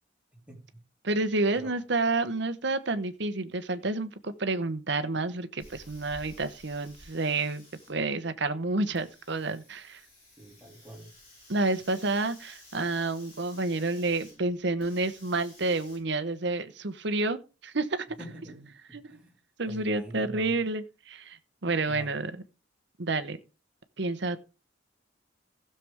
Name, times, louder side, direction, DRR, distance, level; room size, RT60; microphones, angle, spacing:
voice 1, 0.3-0.8 1.5-1.8 10.4-11.1 18.2-19.3 19.6-20.6 21.9-22.2, right 1 dB, 5° right, 3.0 m, -45 dB
voice 2, 1.0-7.6 7.9-10.0 11.5-18.1 18.9-19.2 19.6-22.3 23.0-23.4 24.0-24.4, right 2 dB, 65° right, 1.0 m, -29 dB
Hiss, 5.6-16.0, left 1 dB, 30° left, 7.8 m, -54 dB
16.0 x 6.9 x 3.5 m
head